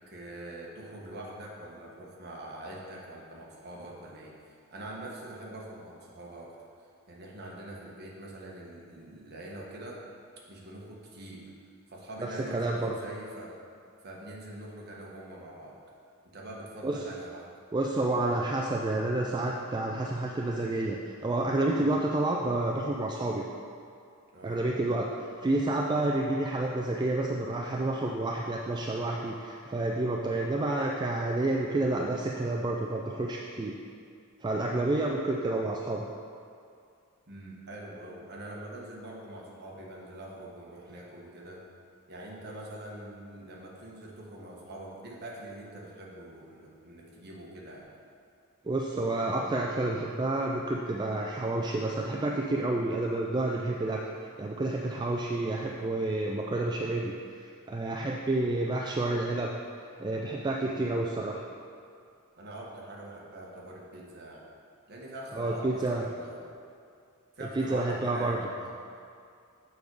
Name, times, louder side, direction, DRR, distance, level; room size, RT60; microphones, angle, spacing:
voice 1, 0.1-6.6 7.1-10.1 10.5-11.5 11.9-13.6 14.0-15.8 16.2-17.5 24.3-24.6 37.3-41.6 42.1-47.9 60.6-61.0 62.4-64.4 64.9-66.5 67.3-68.6, right 1 dB, 50° right, -3 dB, 1.3 m, -44 dB
voice 2, 12.5-12.9 16.8-17.0 17.7-23.4 24.4-33.7 34.4-36.1 48.6-54.1 54.4-57.1 57.4-59.5 60.0-61.4 65.3-66.0 67.6-68.4, right 2 dB, 20° right, -1 dB, 0.3 m, -29 dB
7.0 x 5.3 x 4.7 m, 2.4 s
head